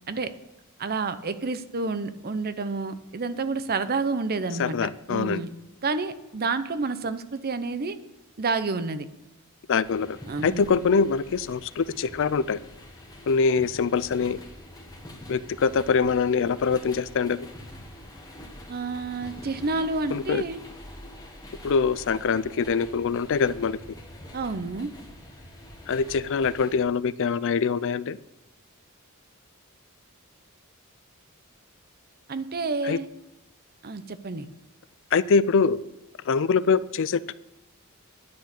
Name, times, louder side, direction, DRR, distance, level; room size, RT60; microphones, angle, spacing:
voice 1, 0.8-5.5 5.8-8.0 8.4-9.1 10.3-10.6 18.7-20.6 24.3-24.9 32.3-33.1 33.8-34.5, right 3 dB, 45° right, 12 dB, 0.7 m, -29 dB
voice 2, 4.6-5.4 9.7-10.2 10.4-12.6 13.3-14.4 15.3-17.5 20.1-20.4 21.6-23.8 25.9-28.2 32.8-33.0 35.1-35.8 36.3-37.3, left 5 dB, 60° left, 18 dB, 0.4 m, -24 dB
sound 1, 9.8-26.8, left 1 dB, 15° left, 1.5 m, -45 dB
10.5 x 6.3 x 8.2 m, 0.93 s
head